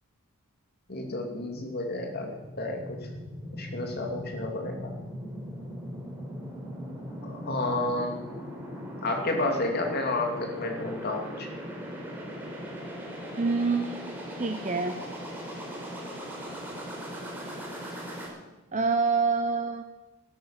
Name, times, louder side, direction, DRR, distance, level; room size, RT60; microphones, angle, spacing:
voice 1, 0.9-3.0 3.5-4.9 7.2-8.2 9.0-11.5, left 2 dB, 45° left, 2 dB, 2.7 m, -31 dB
sound 1, 1.8-18.3, equal, 10° right, 4.0 m, -39 dB
voice 2, 13.4-15.0 18.7-19.8, right 4 dB, 35° right, 5 dB, 0.7 m, -27 dB
13.0 x 12.0 x 7.3 m, 1.1 s
head